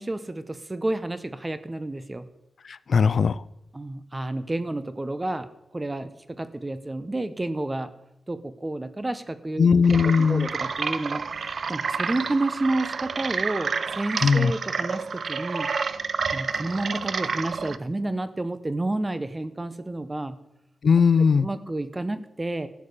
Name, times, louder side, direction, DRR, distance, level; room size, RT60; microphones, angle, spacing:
voice 1, 0.0-2.3 3.7-5.5 5.7-7.9 8.3-15.7 16.3-20.4 21.4-22.7, right 2 dB, 20° right, 12 dB, 1.0 m, -30 dB
voice 2, 2.6-3.4 9.6-10.5 14.2-14.5 20.8-21.5, left 5 dB, 65° left, 19 dB, 0.4 m, -19 dB
sound 1, 9.8-17.8, right 5 dB, 65° right, 0.6 m, -29 dB
14.0 x 7.3 x 8.4 m, 0.87 s
cardioid pair, 80°, 0 cm